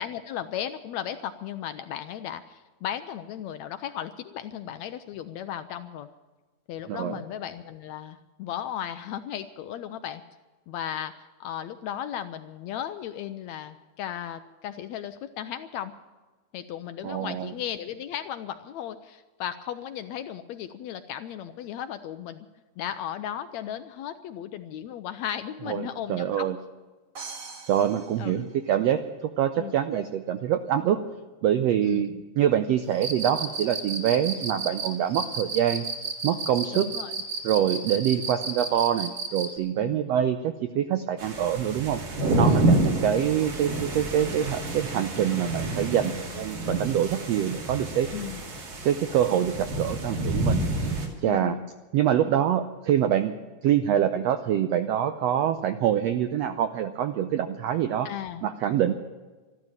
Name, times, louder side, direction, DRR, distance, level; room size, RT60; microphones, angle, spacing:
voice 1, 0.0-6.1 6.7-10.2 10.7-15.9 16.5-22.5 22.8-26.5 28.2-28.4 29.6-29.8 31.8-32.2 36.7-37.1 39.8-40.0 42.5-43.0 46.0-46.4 48.1-48.4 51.3-51.7 58.0-58.4, left 10 dB, 75° left, 10 dB, 1.7 m, -36 dB
voice 2, 6.9-7.2 17.0-17.5 25.7-26.6 27.7-31.0 31.4-32.1 32.4-35.9 36.2-36.9 37.4-48.1 48.8-50.6 51.2-51.6 51.9-53.3 53.6-58.1 58.4-58.9, right 10 dB, 90° right, 9 dB, 1.4 m, -25 dB
sound 1, 27.1-29.1, right 4 dB, 45° right, 1.1 m, -43 dB
Cricket, 32.9-39.5, right 4 dB, 25° right, 1.8 m, -32 dB
sound 2, 41.2-51.1, right 2 dB, 65° right, 3.9 m, -28 dB
13.0 x 12.5 x 8.8 m, 1.3 s
omnidirectional pair, 3.7 m